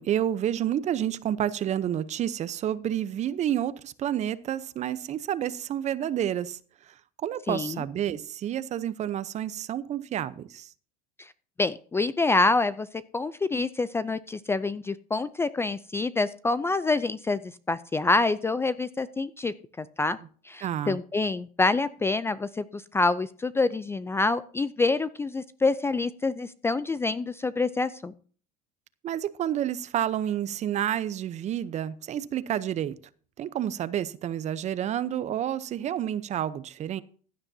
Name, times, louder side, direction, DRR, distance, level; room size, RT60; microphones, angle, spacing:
voice 1, 0.0-6.6 7.2-10.7 20.6-21.0 29.0-32.9 33.4-37.0, right 10 dB, 35° right, 0.7 m, -29 dB
voice 2, 7.5-7.8 11.2-11.3 11.6-12.9 13.1-20.2 20.4-28.1, left 3 dB, 10° left, 0.4 m, -27 dB
15.5 x 9.7 x 2.8 m
supercardioid pair, 120°, 20 cm